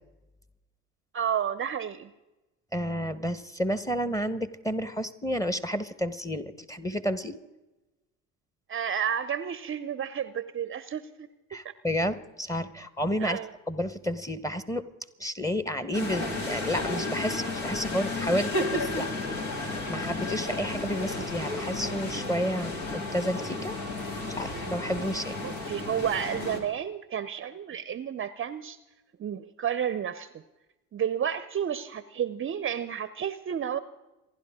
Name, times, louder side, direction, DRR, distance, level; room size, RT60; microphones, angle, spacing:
voice 1, 1.1-2.1 8.7-11.3 11.6-11.7 13.2-13.5 25.4-28.8 29.2-30.4 30.9-33.8, right 8 dB, 35° right, 15 dB, 0.7 m, -31 dB
voice 2, 2.7-7.3 11.5-13.4 13.7-14.8 15.2-19.1 19.5-23.8 24.4-25.4, equal, 10° left, 13 dB, 1.3 m, -31 dB
sound 1, 15.9-26.6, left 2 dB, 65° left, 2.9 m, -33 dB
28.0 x 11.5 x 3.7 m, 1.0 s
hypercardioid pair, 60°, 38 cm